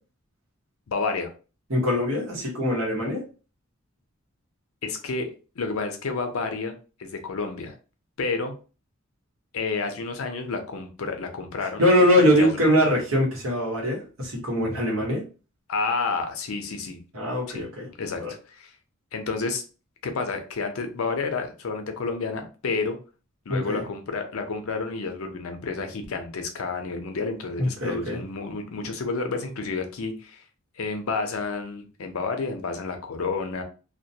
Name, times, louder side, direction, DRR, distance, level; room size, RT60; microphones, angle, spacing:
voice 1, 0.9-1.3 4.8-6.7 7.0-7.7 8.2-8.5 9.5-11.8 12.2-12.5 15.7-17.0 17.5-17.6 18.0-18.2 18.5-18.7 19.1-19.6 20.0-23.0 23.5-30.4 30.8-33.6, left 4 dB, 80° left, 5 dB, 0.5 m, -30 dB
voice 2, 1.7-3.2 11.8-15.2 17.1-17.9 18.2-18.3 23.5-23.8 27.6-28.2, equal, 70° right, -2 dB, 1.0 m, -22 dB
2.2 x 2.1 x 2.7 m, 0.34 s
head